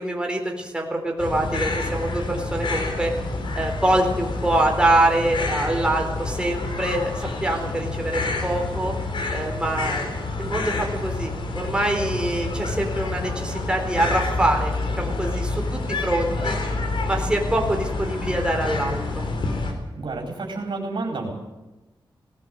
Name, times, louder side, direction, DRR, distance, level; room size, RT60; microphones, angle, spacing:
voice 1, 0.0-3.1 3.5-8.9 9.3-10.1 10.4-16.6 17.1-19.2, right 1 dB, 10° right, 1 dB, 4.0 m, -24 dB
sound 1, 1.2-19.7, left 3 dB, 75° left, 3.9 m, -28 dB
voice 2, 19.9-21.3, right 3 dB, 75° right, 1 dB, 4.4 m, -30 dB
19.5 x 17.0 x 7.9 m, 1.1 s
wide cardioid pair, 120°, 9 cm